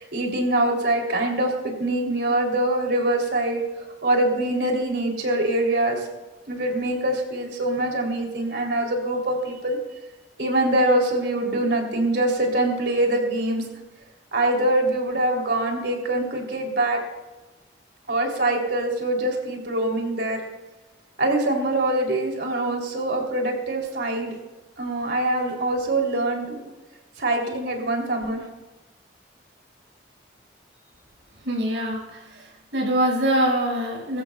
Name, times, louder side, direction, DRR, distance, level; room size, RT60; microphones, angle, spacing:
voice 1, 0.0-6.1 6.5-9.8 10.4-13.6 14.3-17.0 18.1-20.4 21.2-24.3 24.8-26.7 27.2-28.4, right 1 dB, 65° right, 1 dB, 3.3 m, -24 dB
voice 2, 31.4-34.2, right 1 dB, 85° right, -2 dB, 5.8 m, -24 dB
23.0 x 14.0 x 2.4 m, 1.1 s
head